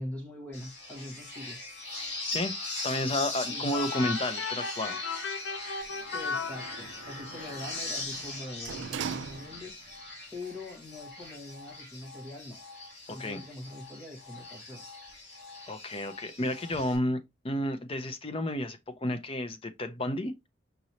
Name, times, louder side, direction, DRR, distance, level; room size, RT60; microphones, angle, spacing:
voice 1, 0.0-1.6 3.5-3.6 6.1-9.8 10.3-12.6 13.1-14.8, left 1 dB, 5° left, 1.4 m, -43 dB
sound 1, 0.5-17.0, left 2 dB, 60° left, 1.9 m, -40 dB
voice 2, 2.8-5.0 13.1-13.4 15.7-20.5, left 1 dB, 30° left, 0.6 m, -31 dB
sound 2, 3.7-7.2, left 5 dB, 85° left, 0.5 m, -36 dB
Sliding door, 5.8-9.9 10.4-10.5, right 7 dB, 80° right, 0.4 m, -42 dB
5.3 x 3.0 x 2.8 m
head